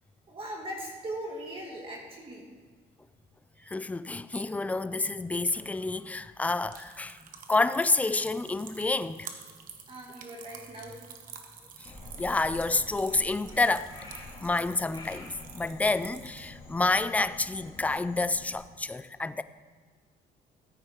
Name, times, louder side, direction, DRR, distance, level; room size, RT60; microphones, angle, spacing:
voice 1, 0.3-2.4 3.6-3.7 9.9-11.0, right 1 dB, 30° right, 2.2 m, -39 dB
voice 2, 3.7-7.2 7.5-9.3 11.8-11.9 12.2-13.9 14.4-19.4, left 3 dB, 10° left, 0.3 m, -29 dB
sound 1, 5.3-17.0, right 7 dB, 55° right, 1.2 m, -49 dB
Frog, 11.8-18.6, left 2 dB, 25° left, 2.4 m, -47 dB
14.0 x 8.7 x 3.6 m
cardioid pair, 110°, 17 cm